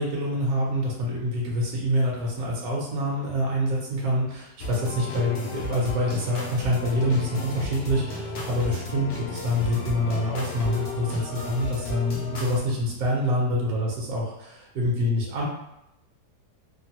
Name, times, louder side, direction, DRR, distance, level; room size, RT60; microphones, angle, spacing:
voice 1, 0.0-15.4, equal, 65° right, -3 dB, 1.0 m, -26 dB
sound 1, 4.6-12.6, left 2 dB, 70° left, 0.7 m, -34 dB
3.0 x 2.2 x 2.8 m, 0.84 s
omnidirectional pair, 1.9 m